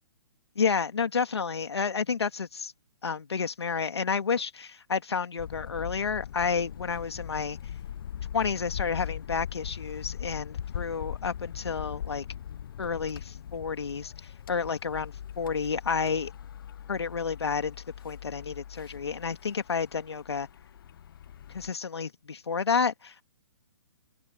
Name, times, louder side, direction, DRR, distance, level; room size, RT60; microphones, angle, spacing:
voice 1, 0.6-2.7 3.0-7.6 8.3-12.3 12.8-16.3 16.9-17.8 18.0-20.5 21.5-23.2, left 5 dB, 80° left, 2.2 m, -30 dB
sound 1, 5.4-21.7, left 9 dB, 55° left, 0.8 m, -40 dB
hypercardioid pair, 135°, 14 cm